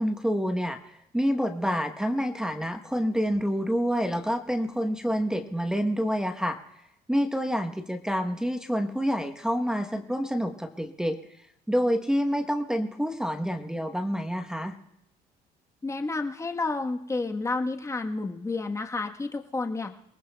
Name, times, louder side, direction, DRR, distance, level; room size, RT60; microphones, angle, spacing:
voice 1, 0.0-6.6 7.1-11.2 11.7-14.8, equal, 5° right, 4 dB, 1.0 m, -27 dB
voice 2, 15.8-19.9, left 3 dB, 15° left, 4 dB, 1.2 m, -30 dB
28.0 x 19.0 x 2.3 m, 0.81 s
cardioid pair, 110°, 17 cm